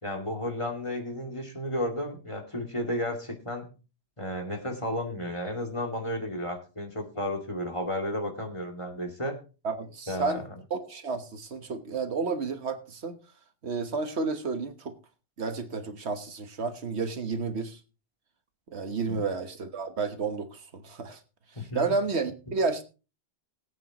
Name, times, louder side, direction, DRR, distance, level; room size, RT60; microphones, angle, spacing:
voice 1, 0.0-3.7 4.2-9.4 10.1-10.5 19.1-19.2 21.6-21.9, left 1 dB, 25° left, 2 dB, 2.4 m, -33 dB
voice 2, 9.6-10.4 10.7-13.2 13.6-14.9 15.4-17.8 18.7-21.2 21.6-22.8, right 4 dB, 75° right, 8 dB, 1.5 m, -31 dB
21.0 x 8.7 x 3.0 m, 0.33 s
omnidirectional pair, 1.1 m